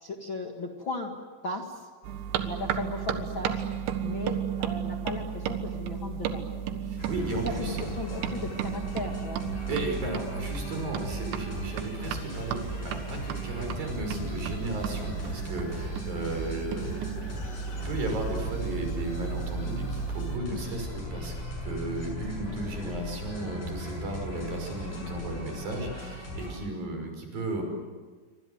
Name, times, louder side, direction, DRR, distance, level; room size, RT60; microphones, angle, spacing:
voice 1, 0.0-1.1 1.4-1.8 2.4-3.6 4.0-6.5 7.4-9.4, left 3 dB, 75° left, 2 dB, 1.1 m, -36 dB
sound 1, 2.0-20.4, right 7 dB, 75° right, 3.8 m, -34 dB
voice 2, 6.8-7.9 9.7-17.1 17.7-27.6, right 2 dB, 50° right, 3 dB, 7.4 m, -35 dB
sound 2, 7.0-26.5, equal, 45° left, 8.4 m, -38 dB
28.0 x 25.0 x 8.0 m, 1.4 s
omnidirectional pair, 5.4 m